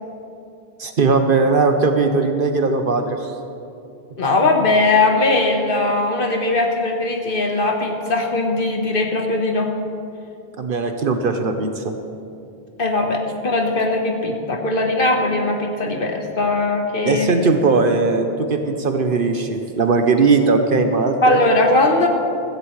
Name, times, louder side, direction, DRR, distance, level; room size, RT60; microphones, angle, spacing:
voice 1, 0.8-3.3 10.6-11.9 17.0-21.4, right 4 dB, 60° right, 6 dB, 1.0 m, -19 dB
voice 2, 4.2-9.7 12.8-17.3 21.2-22.1, left 2 dB, 60° left, 2 dB, 1.5 m, -19 dB
16.0 x 14.5 x 3.2 m, 2.6 s
omnidirectional pair, 1.0 m